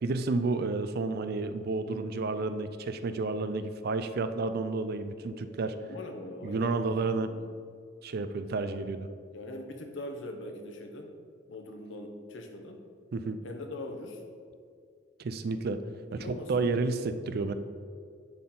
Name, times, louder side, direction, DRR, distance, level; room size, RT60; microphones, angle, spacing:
voice 1, 0.0-5.7 6.4-7.3 8.0-9.1 13.1-13.4 15.2-15.8 16.1-17.5, right 3 dB, 55° right, 10 dB, 0.4 m, -31 dB
voice 2, 5.7-7.5 9.3-11.1 11.5-12.8 13.4-14.2 16.1-16.9, left 1 dB, 70° left, 4 dB, 0.9 m, -42 dB
10.5 x 4.3 x 3.8 m, 2.2 s
head